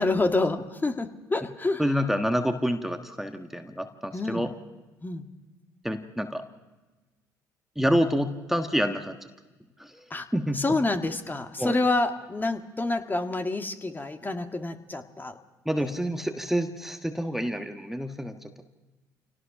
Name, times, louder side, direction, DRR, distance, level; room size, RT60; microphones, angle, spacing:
voice 1, 0.0-1.8 4.1-4.5 5.0-5.3 10.1-10.3 10.5-15.4 15.8-15.9, left 2 dB, 20° left, 6 dB, 1.7 m, -28 dB
voice 2, 1.8-4.5 5.8-6.4 7.8-9.1 9.8-10.8 11.6-11.7 15.6-18.5, equal, 5° right, 6 dB, 1.4 m, -28 dB
26.5 x 18.0 x 5.9 m, 1.2 s
hypercardioid pair, 60°, 9 cm